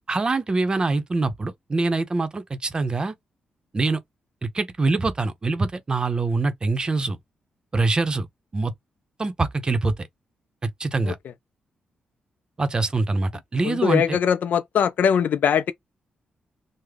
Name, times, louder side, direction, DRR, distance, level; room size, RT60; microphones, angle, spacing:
voice 1, 0.0-3.1 3.7-4.0 4.4-7.2 7.7-8.3 8.5-8.7 9.2-10.1 10.6-11.2 12.6-14.2, right 3 dB, 30° right, 0.6 m, -24 dB
voice 2, 13.6-15.7, left 8 dB, 70° left, 0.3 m, -21 dB
3.3 x 2.0 x 3.5 m
cardioid pair, 105°, 3 cm